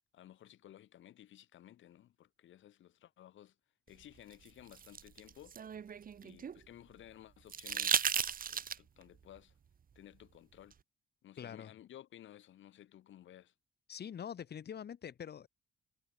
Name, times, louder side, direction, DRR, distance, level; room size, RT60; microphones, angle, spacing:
voice 1, 0.1-3.6 3.9-5.6 6.2-8.1 8.5-9.6 10.0-10.7 11.2-13.5, left 12 dB, 75° left, 3.4 m, -56 dB
sound 1, 4.3-6.6 7.5-9.0 10.7-10.8, right 7 dB, 45° right, 1.6 m, -35 dB
voice 2, 11.4-11.7 13.9-15.5, left 8 dB, 55° left, 3.6 m, -44 dB
cardioid pair, 90°, 20 cm